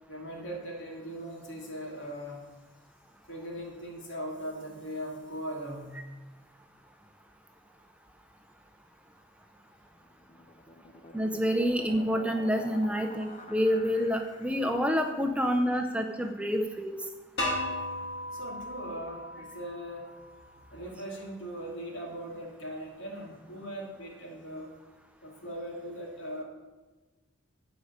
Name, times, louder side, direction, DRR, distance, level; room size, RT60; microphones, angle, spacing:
voice 1, 0.1-2.5 3.3-6.0 18.3-20.1 20.7-24.7 25.2-26.4, equal, 70° left, -1 dB, 2.7 m, -39 dB
sound 1, 10.0-14.8, left 2 dB, 30° left, 0.7 m, -47 dB
voice 2, 11.1-17.0, equal, 5° right, 5 dB, 0.6 m, -28 dB
sound 2, 17.4-20.3, left 1 dB, 55° left, 2.7 m, -35 dB
11.5 x 5.0 x 8.0 m, 1.2 s
head